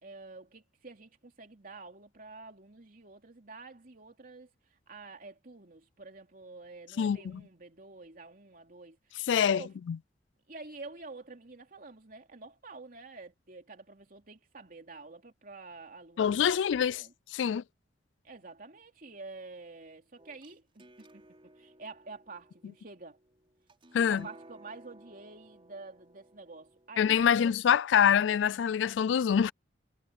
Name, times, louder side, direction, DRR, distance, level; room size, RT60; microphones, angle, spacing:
voice 1, 0.0-9.7 10.5-17.1 18.2-23.2 23.9-27.4, right 3 dB, 50° right, 3.0 m, -49 dB
voice 2, 7.0-7.4 9.3-10.0 16.2-17.0 17.3-17.6 23.9-24.2 27.0-29.5, left 8 dB, 85° left, 0.3 m, -25 dB
sound 1, 20.2-27.9, right 1 dB, 30° right, 5.8 m, -58 dB
head